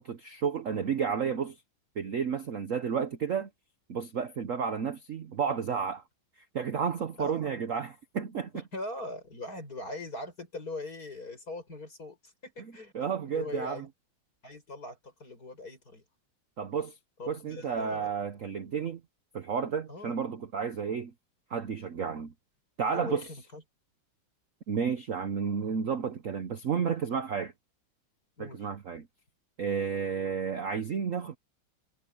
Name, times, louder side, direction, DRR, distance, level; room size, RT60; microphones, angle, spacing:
voice 1, 0.0-1.6 2.0-3.5 3.9-6.0 6.5-8.6 12.9-13.9 16.6-17.0 17.3-19.0 19.3-21.1 21.5-22.3 22.8-23.2 24.7-27.5 28.4-29.1 29.6-31.4, right 6 dB, 50° right, 1.0 m, -31 dB
voice 2, 7.2-7.5 8.5-12.9 13.2-13.9 14.4-16.0 17.2-18.1 19.9-20.2 22.9-23.6 28.4-28.7, left 2 dB, 45° left, 7.5 m, -41 dB
omnidirectional pair, 2.2 m